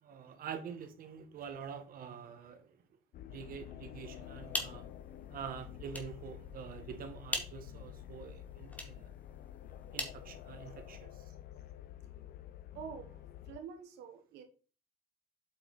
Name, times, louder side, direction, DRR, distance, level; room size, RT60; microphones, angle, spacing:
voice 1, 0.0-2.8 3.3-4.9 5.3-9.1 9.9-11.3, right 7 dB, 60° right, 1.8 m, -46 dB
sound 1, 3.1-13.6, left 11 dB, 60° left, 0.6 m, -49 dB
sound 2, 4.2-11.0, left 1 dB, 10° left, 2.2 m, -44 dB
voice 2, 12.7-13.1 13.5-14.4, right 6 dB, 85° right, 1.5 m, -46 dB
8.4 x 5.9 x 4.4 m
cardioid pair, 110°, 17 cm